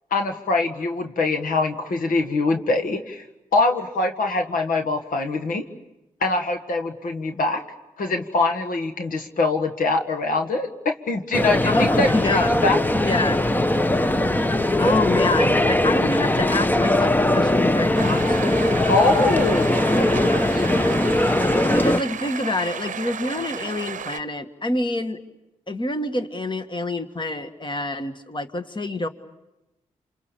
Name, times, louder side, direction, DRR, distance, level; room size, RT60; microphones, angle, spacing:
voice 1, 0.1-3.2 3.5-5.7 6.2-7.6 8.0-12.8 18.9-20.8, left 3 dB, 65° left, 5 dB, 1.8 m, -23 dB
sound 1, 11.3-22.0, left 1 dB, 10° left, 1.0 m, -20 dB
voice 2, 11.7-12.5 13.0-13.4 14.8-18.6 21.7-25.2 25.7-29.1, left 2 dB, 30° left, 8 dB, 1.9 m, -26 dB
sound 2, 17.9-24.2, right 7 dB, 55° right, 0.9 m, -33 dB
28.5 x 27.0 x 7.0 m, 0.96 s
hypercardioid pair, 40°, 15 cm